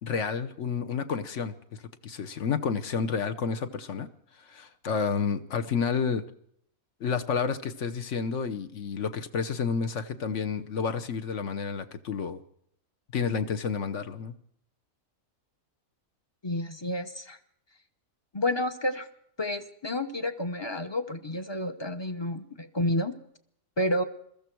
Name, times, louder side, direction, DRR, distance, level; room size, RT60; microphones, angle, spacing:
voice 1, 0.0-1.5 2.0-4.1 4.5-6.2 7.0-12.4 13.1-14.3, left 6 dB, 60° left, 9 dB, 1.2 m, -30 dB
voice 2, 16.4-17.4 18.3-19.1 19.4-23.1 23.8-24.0, left 1 dB, 25° left, 9 dB, 0.8 m, -30 dB
22.0 x 14.0 x 4.6 m, 0.69 s
omnidirectional pair, 1.5 m